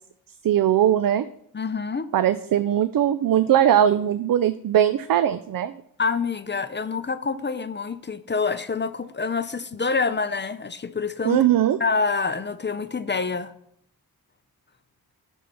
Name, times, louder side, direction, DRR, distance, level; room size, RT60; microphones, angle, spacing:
voice 1, 0.4-1.2 2.1-5.7 11.2-11.8, right 10 dB, 60° right, 13 dB, 0.5 m, -20 dB
voice 2, 1.5-2.1 6.0-11.4 11.8-13.5, left 4 dB, 30° left, 13 dB, 0.5 m, -26 dB
7.5 x 5.5 x 5.5 m, 0.73 s
cardioid pair, 65°, 38 cm